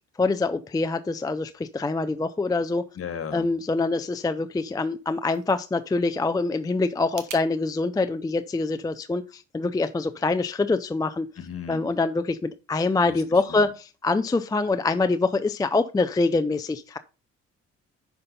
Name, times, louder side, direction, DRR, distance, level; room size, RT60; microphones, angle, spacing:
voice 1, 0.2-2.9 3.3-11.3 11.7-17.0, left 3 dB, 15° left, 10 dB, 0.4 m, -25 dB
voice 2, 2.9-3.5 11.4-11.9 13.0-13.7, left 7 dB, 50° left, 9 dB, 1.5 m, -36 dB
sound 1, 4.8-7.5, right 8 dB, 80° right, 1.2 m, -46 dB
5.7 x 5.4 x 5.2 m, 0.33 s
cardioid pair, 90°, 30 cm